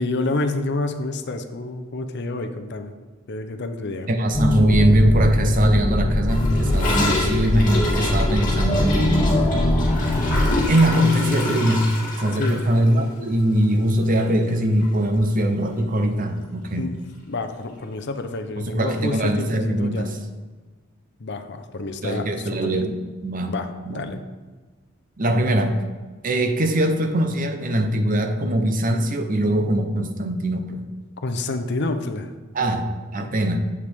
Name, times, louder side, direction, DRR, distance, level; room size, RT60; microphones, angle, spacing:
voice 1, 0.0-2.9 3.3-4.1 12.3-12.6 16.8-16.9 17.3-20.1 21.2-22.8 23.5-24.2 31.2-32.3 32.6-32.8 33.2-33.3, left 2 dB, 55° left, 8 dB, 0.7 m, -28 dB
voice 2, 4.1-9.3 10.7-11.9 12.2-16.8 18.6-20.1 22.0-23.5 23.9-24.1 25.2-25.8 26.2-30.8 32.5-32.9 33.1-33.6, right 1 dB, 40° right, 6 dB, 0.8 m, -21 dB
sound 1, 4.3-10.6, left 1 dB, 20° left, 0.8 m, -21 dB
Gurgling / Toilet flush, 6.3-14.5 14.8-14.9 15.2-15.7 15.9-16.0 16.3-16.4 17.4-17.5, left 2 dB, 40° left, 2.6 m, -29 dB
8.2 x 7.9 x 3.5 m, 1.3 s
head